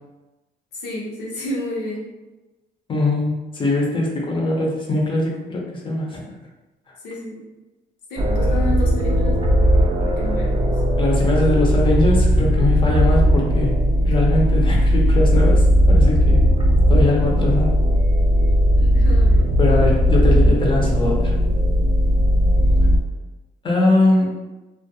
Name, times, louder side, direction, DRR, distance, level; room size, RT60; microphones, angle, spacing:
voice 1, 0.7-2.1 7.0-7.5 8.1-10.8 18.8-19.5, left 1 dB, 85° left, -3 dB, 0.8 m, -31 dB
voice 2, 2.9-6.2 11.0-13.7 14.0-16.4 16.9-17.8 19.6-21.4 23.6-24.3, left 2 dB, 30° left, -2 dB, 0.6 m, -21 dB
sound 1, 8.2-23.0, equal, 30° right, 0.4 m, -17 dB
2.3 x 2.1 x 2.7 m, 1.1 s
cardioid pair, 110°, 17 cm